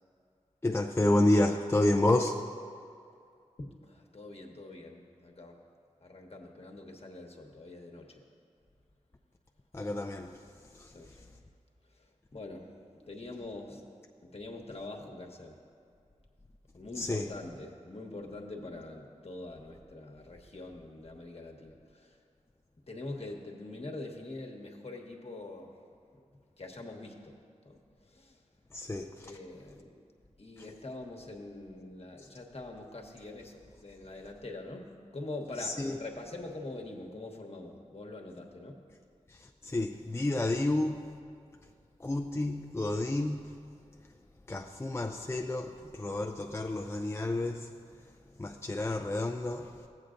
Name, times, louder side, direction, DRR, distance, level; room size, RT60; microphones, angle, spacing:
voice 1, 0.6-2.4 9.7-10.5 10.7-11.0 16.9-17.3 28.7-29.4 30.6-30.7 35.6-36.0 39.3-41.1 42.0-43.5 44.5-47.7 48.4-49.7, left 1 dB, 20° left, 0.5 m, -30 dB
voice 2, 4.1-5.5 6.0-8.1 10.9-11.1 12.3-12.7 13.1-13.8 14.3-15.5 16.7-21.7 22.9-25.7 26.6-27.3 27.6-27.8 28.2-28.3 29.2-29.9 30.4-34.9 35.1-38.7, left 2 dB, 55° left, 1.2 m, -44 dB
15.0 x 8.2 x 2.5 m
cardioid pair, 45°, 13 cm